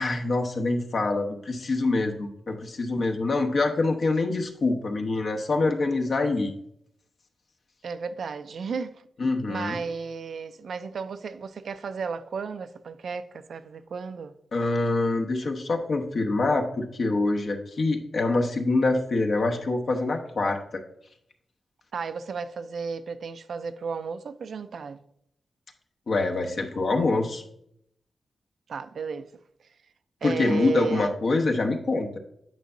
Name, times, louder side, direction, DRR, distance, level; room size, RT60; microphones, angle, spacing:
voice 1, 0.0-6.5 9.2-9.8 14.5-20.8 26.1-27.4 30.2-32.2, left 3 dB, 60° left, 0.9 m, -25 dB
voice 2, 7.8-8.9 9.5-14.3 21.9-25.0 28.7-29.3 30.2-31.1, right 5 dB, 75° right, 0.4 m, -33 dB
9.3 x 5.5 x 2.6 m
wide cardioid pair, 115°, 0 cm